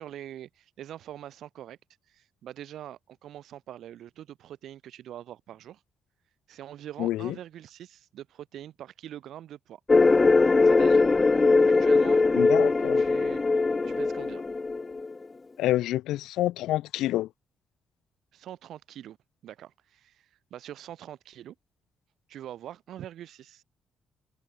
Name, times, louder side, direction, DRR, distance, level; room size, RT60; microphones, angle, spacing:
voice 1, 0.0-1.8 2.1-5.8 6.5-9.8 10.6-11.1 11.6-12.2 12.9-13.4 13.8-14.4 18.3-19.2 19.4-21.5 22.3-23.6, right 11 dB, 75° right, 4.9 m, -43 dB
voice 2, 7.0-7.3 12.4-13.0 15.6-17.3, left 15 dB, 90° left, 1.4 m, -27 dB
sound 1, 9.9-15.1, left 3 dB, 25° left, 0.5 m, -21 dB
cardioid pair, 90°, 0 cm